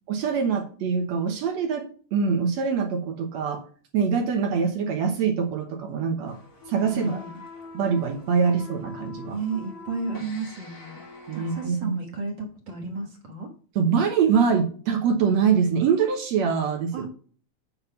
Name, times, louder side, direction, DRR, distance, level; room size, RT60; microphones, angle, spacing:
voice 1, 0.1-1.9 2.1-3.6 3.9-6.4 6.7-7.1 7.7-9.4 11.3-12.0 13.8-17.1, right 6 dB, 70° right, 4 dB, 2.2 m, -24 dB
sound 1, 6.2-11.7, left 3 dB, 35° left, 2.4 m, -44 dB
voice 2, 6.9-7.4 9.3-11.0 11.3-13.5 16.9-17.1, right 4 dB, 45° right, 2 dB, 1.7 m, -33 dB
8.5 x 4.0 x 6.9 m, 0.42 s
omnidirectional pair, 3.3 m